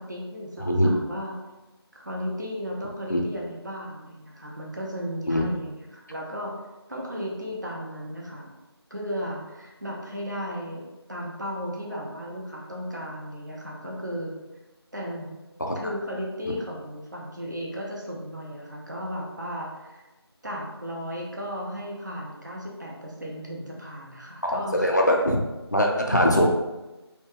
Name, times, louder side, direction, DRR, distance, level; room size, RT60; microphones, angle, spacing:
voice 1, 0.0-1.3 1.9-6.5 6.9-8.5 8.9-14.3 14.9-15.4 15.8-20.0 20.4-24.9 26.1-26.2, equal, 45° right, -2 dB, 0.6 m, -35 dB
voice 2, 0.6-0.9 3.1-3.2 5.3-5.5 15.6-15.8 16.4-16.5 24.4-25.4 25.7-26.5, equal, 40° left, 0 dB, 0.3 m, -22 dB
2.9 x 2.2 x 3.0 m, 1.1 s
figure-of-eight pair, 170°, 14 cm